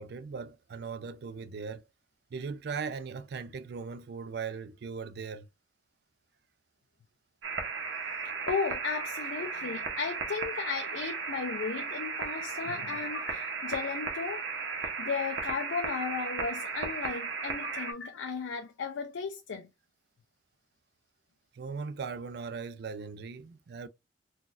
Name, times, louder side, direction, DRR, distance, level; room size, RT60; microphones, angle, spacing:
voice 1, 0.0-1.8 2.3-5.5 21.5-23.9, right 5 dB, 60° right, 0.4 m, -39 dB
sound 1, 7.4-17.9, right 4 dB, 85° right, 0.8 m, -35 dB
voice 2, 8.4-14.4 15.0-19.7, left 5 dB, 90° left, 0.5 m, -35 dB
3.9 x 2.3 x 2.5 m
head